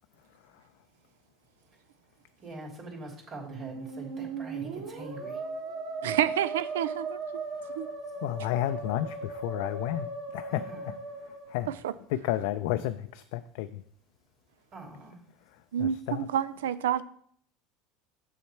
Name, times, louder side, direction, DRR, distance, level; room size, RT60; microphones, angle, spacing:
voice 1, 2.4-5.4 10.5-10.9 14.7-15.2, right 2 dB, 45° right, 3.0 m, -43 dB
Musical instrument, 3.4-12.2, right 3 dB, 75° right, 1.9 m, -38 dB
voice 2, 6.0-7.2 7.8-7.9 11.8-11.9 15.7-17.0, right 10 dB, 90° right, 0.4 m, -28 dB
voice 3, 8.2-10.9 11.2-11.7 12.1-13.8 15.8-16.3, left 13 dB, 75° left, 0.4 m, -32 dB
7.1 x 6.5 x 4.5 m
supercardioid pair, 100°, 0 cm